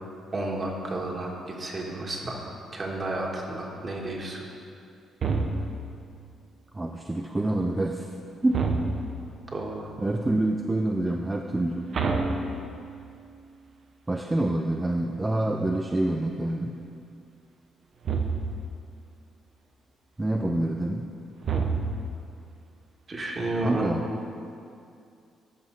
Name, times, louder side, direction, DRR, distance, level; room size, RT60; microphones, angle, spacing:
voice 1, 0.3-2.5 2.7-4.5 9.5-9.9 23.1-24.0, right 2 dB, 35° right, -1 dB, 1.8 m, -32 dB
sound 1, 5.2-6.0 8.5-9.3 11.9-13.1 18.0-18.7 21.4-22.3, right 4 dB, 55° right, 0.8 m, -28 dB
voice 2, 6.7-8.1 8.4-8.7 10.0-11.9 14.1-16.8 20.2-21.1 23.6-24.1, right 1 dB, 15° right, 3 dB, 0.5 m, -27 dB
14.0 x 6.0 x 4.0 m, 2.5 s
cardioid pair, 90°, 0 cm